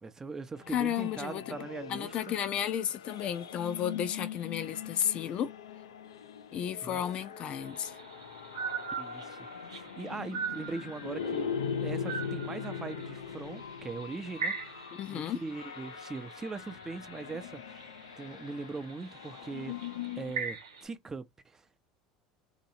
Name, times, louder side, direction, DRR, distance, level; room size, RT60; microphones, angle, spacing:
voice 1, 0.0-2.3 6.8-7.0 9.0-11.5 11.8-19.7 20.2-21.7, right 3 dB, 20° right, 0.7 m, -41 dB
sound 1, 0.6-20.4, left 7 dB, 90° left, 0.5 m, -41 dB
voice 2, 0.7-1.6 1.9-5.5 6.5-8.0 14.9-15.4, left 9 dB, 50° left, 0.6 m, -33 dB
sound 2, 7.6-20.8, right 6 dB, 90° right, 1.0 m, -42 dB
2.9 x 2.7 x 4.2 m
hypercardioid pair, 80°, 2 cm